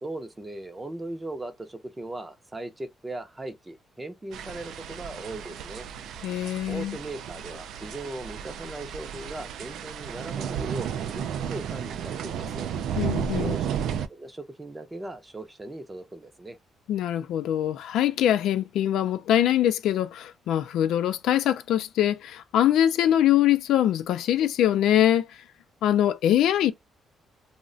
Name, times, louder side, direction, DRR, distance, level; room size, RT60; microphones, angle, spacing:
voice 1, 0.0-5.9 6.7-12.7 13.4-13.7 14.1-16.6, right 2 dB, 15° right, 0.5 m, -38 dB
sound 1, 4.3-14.1, right 8 dB, 75° right, 0.3 m, -33 dB
voice 2, 6.2-7.0 13.0-13.6 16.9-25.4 25.8-26.7, left 11 dB, 85° left, 0.4 m, -23 dB
2.4 x 2.1 x 3.7 m
cardioid pair, 145°, 0 cm